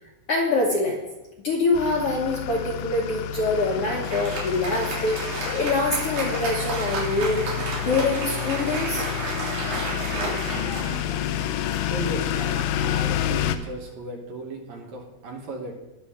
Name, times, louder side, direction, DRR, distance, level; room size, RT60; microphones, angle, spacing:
voice 1, 0.3-1.0 1.4-7.5 7.8-9.0, left 2 dB, 60° left, -1 dB, 1.7 m, -25 dB
sound 1, 1.7-13.6, left 10 dB, 80° left, 2.3 m, -29 dB
Applause, 3.5-13.3, right 2 dB, 85° right, 4.8 m, -33 dB
voice 2, 11.9-15.7, right 1 dB, 60° right, 1 dB, 2.3 m, -36 dB
20.0 x 6.9 x 3.7 m, 1.1 s
omnidirectional pair, 4.0 m